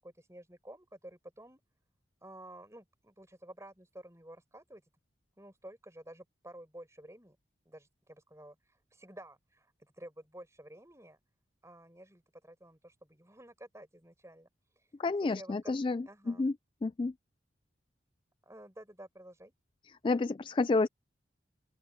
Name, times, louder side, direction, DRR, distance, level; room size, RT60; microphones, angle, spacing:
voice 1, 0.0-1.6 2.2-4.8 5.4-7.4 7.7-11.2 11.6-14.5 15.2-16.5 18.4-19.5, right 1 dB, 15° right, 7.5 m, -52 dB
voice 2, 15.0-16.5 16.8-17.1 20.0-20.9, left 3 dB, 30° left, 0.3 m, -30 dB
open air
head